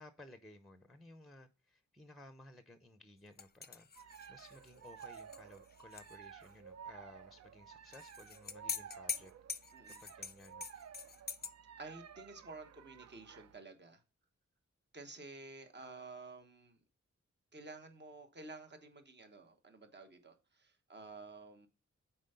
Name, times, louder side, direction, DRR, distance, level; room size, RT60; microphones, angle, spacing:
voice 1, 0.0-9.3 9.6-10.8, left 1 dB, ahead, 9 dB, 0.7 m, -58 dB
sound 1, 3.4-6.2 6.4-6.5 7.9-11.5, left 5 dB, 35° left, 0.5 m, -44 dB
sound 2, 4.0-13.6, right 8 dB, 60° right, 0.4 m, -54 dB
voice 2, 9.7-10.0 11.8-14.0 14.9-16.8 17.5-21.7, right 3 dB, 35° right, 6 dB, 1.2 m, -52 dB
7.2 x 4.6 x 5.5 m, 0.32 s
wide cardioid pair, 80°, 29 cm